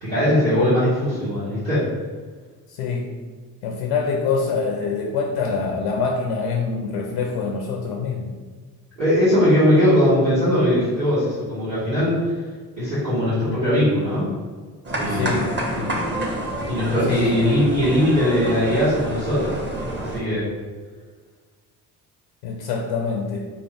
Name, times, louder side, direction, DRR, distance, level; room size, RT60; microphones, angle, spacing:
voice 1, 0.0-1.9 9.0-12.3 12.8-14.3 14.9-15.4 16.6-19.6 19.9-20.5, equal, 85° right, -13 dB, 1.4 m, -20 dB
voice 2, 2.7-3.2 3.6-8.3 15.1-16.1 17.1-17.5 22.4-23.5, left 5 dB, 65° left, 2 dB, 0.6 m, -25 dB
sound 1, 14.8-20.2, right 1 dB, 20° right, 1.0 m, -28 dB
4.4 x 2.5 x 3.4 m, 1.5 s
figure-of-eight pair, 45°, 49 cm